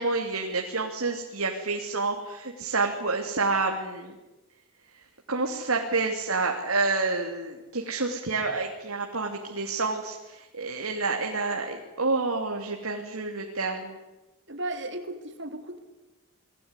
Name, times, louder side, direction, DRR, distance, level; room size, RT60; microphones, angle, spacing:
voice 1, 0.0-4.1 5.3-14.0, right 3 dB, 70° right, 2 dB, 2.9 m, -29 dB
voice 2, 14.5-15.8, right 1 dB, 50° right, 7 dB, 3.3 m, -35 dB
29.5 x 20.0 x 9.8 m, 1.0 s
head